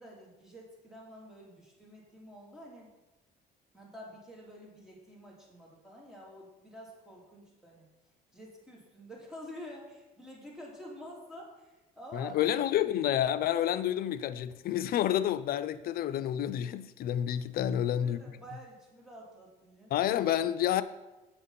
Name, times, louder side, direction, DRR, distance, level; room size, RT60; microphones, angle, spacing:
voice 1, 0.0-2.9 3.7-7.9 8.3-12.4 17.6-19.9, equal, 5° right, 2.9 m, -49 dB
voice 2, 12.1-18.4 19.9-20.8, left 11 dB, 60° left, 0.5 m, -29 dB
8.1 x 6.0 x 5.7 m
cardioid pair, 110°, 17 cm